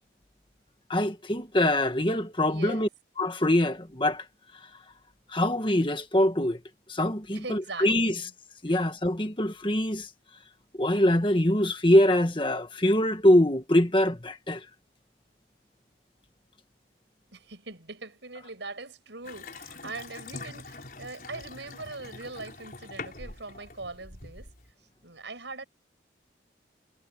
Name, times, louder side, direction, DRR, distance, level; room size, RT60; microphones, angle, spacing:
voice 1, 0.9-2.9 3.2-4.2 5.3-6.6 6.9-8.1 8.6-10.1 10.8-14.6, left 1 dB, 25° left, 1.8 m, -24 dB
voice 2, 2.4-2.9 7.3-8.3 8.7-8.9 17.3-24.5 25.0-25.6, right 3 dB, 90° right, 7.0 m, -41 dB
Water tap faucet / Sink (filling or washing) / Bathtub (filling or washing), 19.2-24.7, left 3 dB, 50° left, 5.1 m, -44 dB
head